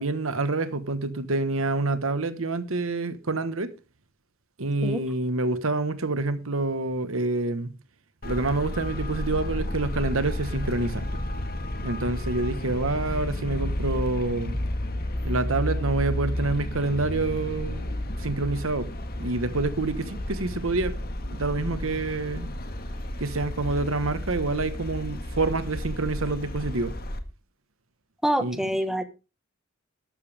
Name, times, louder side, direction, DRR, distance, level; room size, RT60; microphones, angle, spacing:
voice 1, 0.0-3.7 4.6-7.7 8.2-11.2 11.8-14.6 15.2-17.8 18.2-18.9 19.2-20.9 21.3-22.5 23.2-26.9 28.4-28.6, right 2 dB, 70° right, 1.3 m, -27 dB
Traffic noise roadway noise, 8.2-27.2, left 1 dB, 45° left, 1.7 m, -32 dB
voice 2, 28.2-29.0, equal, ahead, 1.3 m, -26 dB
12.5 x 12.5 x 3.5 m
head